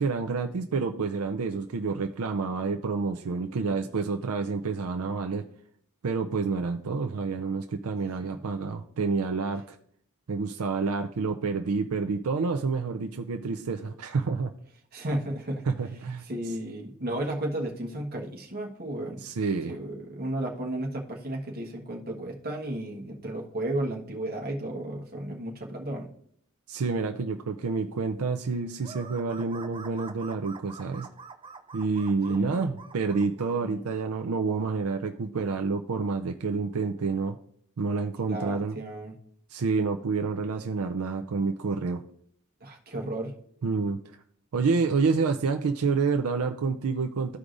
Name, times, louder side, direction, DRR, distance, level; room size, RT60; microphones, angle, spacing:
voice 1, 0.0-5.4 6.0-9.8 10.3-14.5 15.6-16.5 19.2-19.8 26.7-31.1 31.7-37.4 37.8-38.8 39.5-42.0 43.6-44.0 44.5-47.4, right 4 dB, 75° right, 5 dB, 0.5 m, -28 dB
voice 2, 14.9-15.6 16.3-19.2 19.6-26.1 32.3-32.7 33.6-33.8 38.3-39.1 42.6-43.3, right 1 dB, 45° right, 0 dB, 1.3 m, -33 dB
sound 1, 28.8-33.6, right 4 dB, 20° right, 0.5 m, -45 dB
14.0 x 4.8 x 2.6 m, 0.65 s
head